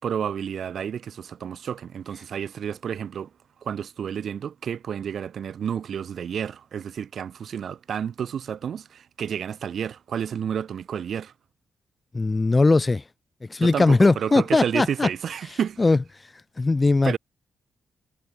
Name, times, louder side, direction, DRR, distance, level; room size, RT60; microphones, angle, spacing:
voice 1, 0.0-3.3 3.6-11.3 13.6-15.8 17.0-17.2, right 8 dB, 65° right, 2.7 m, -30 dB
voice 2, 12.1-13.0 13.5-15.1 15.8-16.0 16.6-17.2, left 3 dB, 25° left, 1.0 m, -19 dB
cardioid pair, 70°, 0 cm